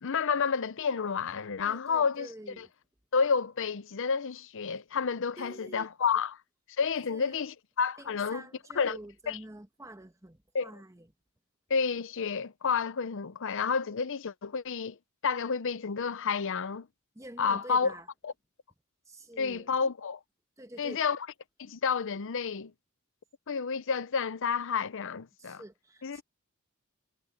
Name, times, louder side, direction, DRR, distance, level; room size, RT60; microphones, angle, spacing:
voice 1, 0.0-2.3 2.6-2.7 3.1-6.3 6.8-8.4 8.7-9.0 9.3-9.4 10.5-10.7 11.7-15.0 15.2-16.9 17.4-18.0 18.2-18.3 19.4-20.2 20.8-21.3 21.6-22.7 23.5-25.6 26.0-26.2, left 5 dB, 60° left, 0.6 m, -30 dB
voice 2, 1.6-2.7 5.4-5.9 6.9-7.4 8.0-11.1 17.1-18.1 19.1-19.7 20.6-21.0 25.4-26.2, right 1 dB, 15° right, 1.3 m, -47 dB
head